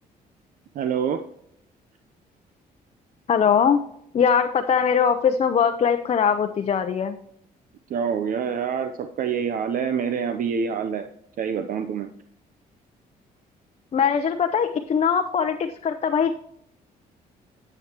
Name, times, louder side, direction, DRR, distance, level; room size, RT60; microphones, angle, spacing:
voice 1, 0.7-1.2 7.9-11.1 11.4-12.1, right 7 dB, 60° right, 8 dB, 0.7 m, -26 dB
voice 2, 3.3-3.8 4.1-7.2 13.9-16.3, left 7 dB, 40° left, 6 dB, 0.7 m, -21 dB
10.5 x 8.0 x 3.0 m, 0.72 s
cardioid pair, 110°, 16 cm